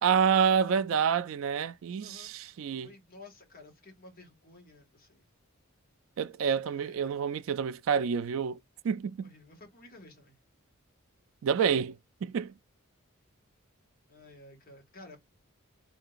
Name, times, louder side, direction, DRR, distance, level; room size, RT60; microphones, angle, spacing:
voice 1, 0.0-2.9 6.2-8.6 8.8-9.3 11.4-12.5, right 7 dB, 65° right, 0.3 m, -28 dB
voice 2, 2.0-2.3 2.8-5.3 6.7-7.2 9.2-10.4 14.1-15.2, left 2 dB, 45° left, 1.7 m, -53 dB
3.7 x 3.7 x 2.5 m
head